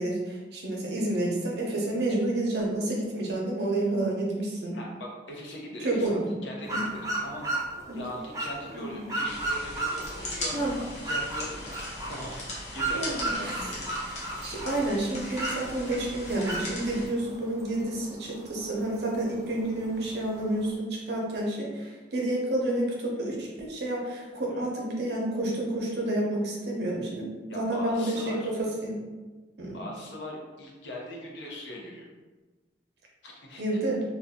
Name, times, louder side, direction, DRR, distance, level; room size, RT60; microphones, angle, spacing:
voice 1, 0.0-4.7 5.8-6.3 6.7-6.9 7.9-8.0 8.7-9.0 10.5-10.8 12.9-13.7 14.4-28.4 28.8-28.9 29.6-29.8 33.6-34.0, right 1 dB, 65° right, -2 dB, 0.7 m, -29 dB
voice 2, 4.7-7.5 7.9-11.8 12.1-13.8 24.5-24.7 27.5-28.5 29.7-32.1 33.2-33.8, left 1 dB, 85° left, -2 dB, 0.7 m, -40 dB
sound 1, 6.6-20.7, right 2 dB, 20° right, 0.5 m, -36 dB
sound 2, 9.2-17.1, left 1 dB, 40° left, 0.8 m, -39 dB
2.7 x 2.2 x 3.5 m, 1.3 s
head